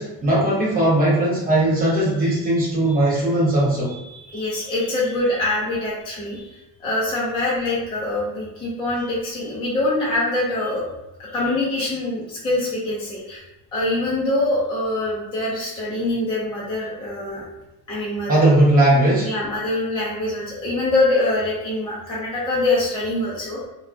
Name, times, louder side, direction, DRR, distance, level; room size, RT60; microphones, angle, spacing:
voice 1, 0.0-3.9 18.3-19.3, right 1 dB, 25° right, -5 dB, 0.8 m, -18 dB
voice 2, 3.9-10.9 11.2-13.4 13.7-17.4 17.9-18.4 19.2-23.6, left 2 dB, 15° left, -7 dB, 0.5 m, -24 dB
2.7 x 2.2 x 2.3 m, 0.93 s
cardioid pair, 165°, 38 cm